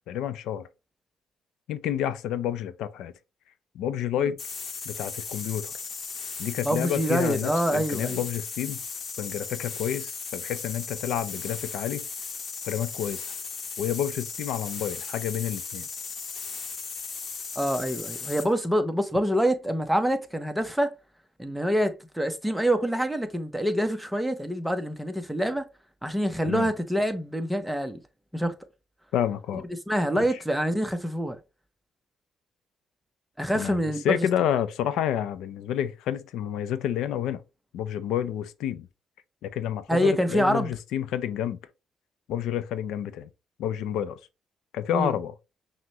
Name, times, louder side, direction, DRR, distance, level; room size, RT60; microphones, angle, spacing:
voice 1, 0.1-0.7 1.7-3.1 3.7-4.4 4.9-5.7 6.4-8.8 9.2-12.1 12.7-13.3 13.8-15.9 26.4-26.7 29.1-29.6 33.5-37.4 37.7-38.9 39.4-41.6 42.3-43.3 43.6-44.2 44.7-45.3, left 10 dB, 85° left, 0.4 m, -29 dB
sound 1, 4.4-18.5, left 5 dB, 50° left, 0.9 m, -36 dB
voice 2, 6.6-8.2 17.6-20.9 21.4-25.7 26.0-28.0 28.3-28.5 29.9-31.4 33.4-34.3 39.9-40.7 44.9-45.1, equal, 5° right, 0.7 m, -26 dB
5.9 x 2.1 x 2.8 m
cardioid pair, 90°, 0 cm